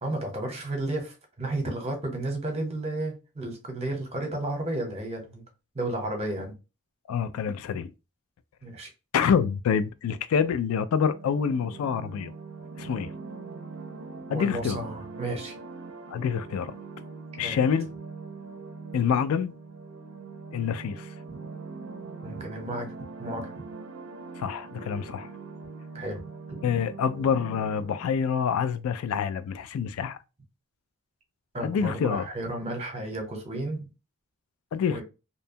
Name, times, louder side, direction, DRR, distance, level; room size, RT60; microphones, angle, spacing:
voice 1, 0.0-5.4 5.7-6.6 8.6-8.9 14.3-15.5 17.4-17.6 22.2-23.5 25.9-26.2 31.5-33.9 34.9-35.0, right 1 dB, 30° right, 0.8 m, -32 dB
voice 2, 7.1-7.9 9.1-12.3 12.8-13.1 14.3-14.8 16.1-16.7 17.4-17.9 18.9-19.5 20.5-21.1 24.4-25.3 26.6-30.2 31.6-32.2 34.7-35.0, left 7 dB, 75° left, 0.3 m, -26 dB
sound 1, 10.9-28.2, right 4 dB, 65° right, 0.4 m, -42 dB
2.7 x 2.1 x 2.6 m
head